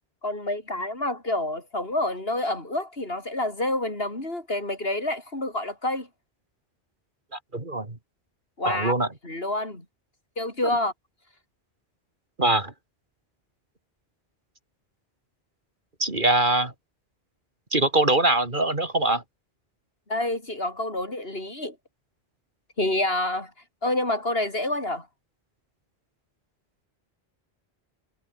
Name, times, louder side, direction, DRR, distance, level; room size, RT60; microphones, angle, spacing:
voice 1, 0.2-6.1 8.6-8.9 9.2-9.9 10.4-10.9 20.1-21.8 22.8-23.5 23.8-25.1, left 1 dB, 65° left, 5.4 m, -28 dB
voice 2, 7.5-8.0 8.7-9.1 12.4-12.7 16.0-16.7 17.7-19.2, right 2 dB, 50° right, 3.3 m, -22 dB
omnidirectional pair, 1.1 m